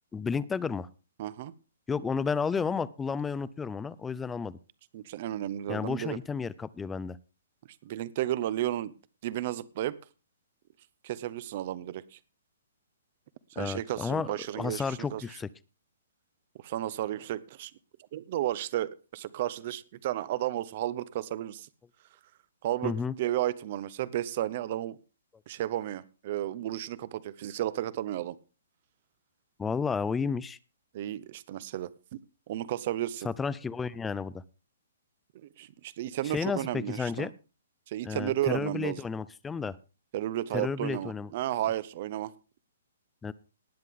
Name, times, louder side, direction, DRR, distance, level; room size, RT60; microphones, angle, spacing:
voice 1, 0.1-0.9 1.9-4.6 5.7-7.2 13.6-14.3 14.6-15.5 22.8-23.1 29.6-30.6 33.2-34.4 36.2-37.3 38.0-39.8 40.5-41.3 43.2-43.3, left 5 dB, 10° left, 19 dB, 0.6 m, -32 dB
voice 2, 1.2-1.5 4.9-6.2 7.8-8.9 9.2-10.0 11.0-12.2 13.5-15.2 16.6-17.7 18.1-21.7 22.6-22.9 23.2-25.0 25.5-28.4 30.9-32.2 32.5-33.3 35.3-37.3 37.9-39.0 40.1-42.3, right 13 dB, 45° right, 18 dB, 0.8 m, -33 dB
19.5 x 7.6 x 3.6 m, 0.32 s
hypercardioid pair, 140°, 0 cm